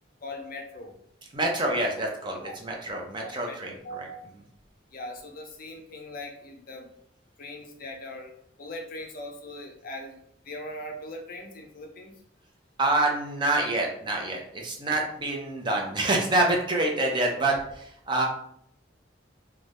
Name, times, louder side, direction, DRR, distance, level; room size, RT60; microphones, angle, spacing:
voice 1, 0.2-0.9 2.4-2.6 3.2-3.5 3.8-4.3 4.9-6.9 7.4-10.2 10.4-12.2, left 1 dB, 50° left, 2 dB, 0.5 m, -40 dB
voice 2, 1.3-4.1 12.8-18.3, right 2 dB, 25° right, 0 dB, 0.5 m, -27 dB
2.6 x 2.2 x 3.3 m, 0.70 s
head